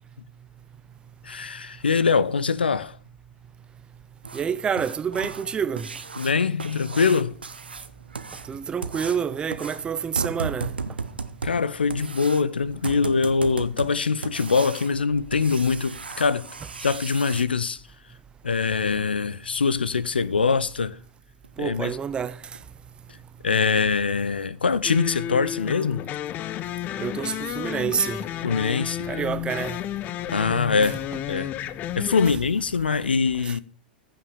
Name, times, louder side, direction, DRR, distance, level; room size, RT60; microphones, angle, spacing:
voice 1, 1.2-3.0 6.2-7.4 11.4-16.5 16.8-17.8 18.4-21.0 21.6-22.0 23.4-26.1 28.4-29.1 30.3-31.0 31.3-31.5 32.0-33.6, left 5 dB, 75° left, 0.6 m, -23 dB
sound 1, 4.2-17.4 19.8-19.9 20.3-20.4 20.9-21.0 21.4-21.5 22.0-22.2 22.5-22.6 23.1-23.2, right 4 dB, 75° right, 0.9 m, -36 dB
voice 2, 4.3-5.9 8.5-10.7 21.6-22.4 27.0-28.2 29.1-29.8 33.5-33.6, right 7 dB, 15° right, 0.5 m, -27 dB
sound 2, 24.8-32.3, left 12 dB, 30° left, 0.5 m, -32 dB
15.5 x 5.9 x 4.8 m
figure-of-eight pair, 95°, 5 cm